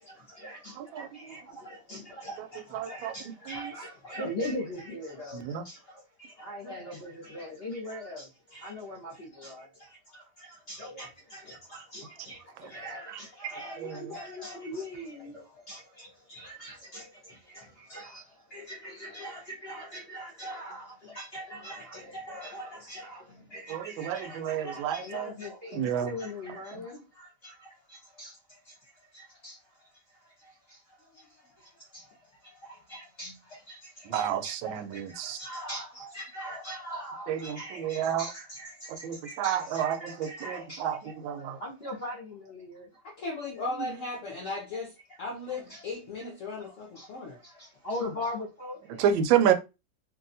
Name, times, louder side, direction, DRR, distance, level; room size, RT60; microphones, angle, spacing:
voice 1, 0.0-42.9 44.4-44.5 45.5-45.8 46.6-49.0, left 1 dB, 45° left, 0.9 m, -42 dB
voice 2, 0.8-1.3 2.7-3.1 3.5-3.6 5.3-5.6 13.1-14.0 23.7-25.3 25.7-26.1 34.1-35.4 37.3-38.3 38.9-41.6 49.0-49.5, right 9 dB, 85° right, 1.3 m, -30 dB
voice 3, 43.2-47.4, left 3 dB, 75° left, 0.7 m, -37 dB
3.1 x 2.7 x 2.6 m
omnidirectional pair, 2.1 m